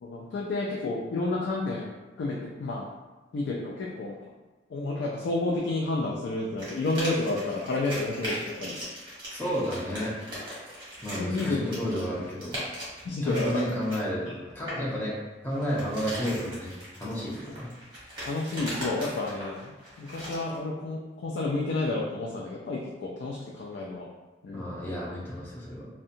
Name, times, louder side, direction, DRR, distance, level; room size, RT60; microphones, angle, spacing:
voice 1, 0.0-1.9 2.2-2.9 3.3-4.1 4.7-8.8 11.2-11.6 13.0-13.6 14.2-14.3 18.3-19.6 20.0-24.0 24.4-24.7, left 2 dB, 80° left, -3 dB, 0.3 m, -30 dB
sound 1, 6.6-14.9 15.5-20.6, equal, 25° right, 1.0 m, -39 dB
voice 2, 9.3-10.1 11.0-12.6 13.2-15.2 15.4-16.7 17.0-17.7 24.5-25.9, equal, 10° left, -6 dB, 0.6 m, -31 dB
2.7 x 2.1 x 2.5 m, 1.2 s
head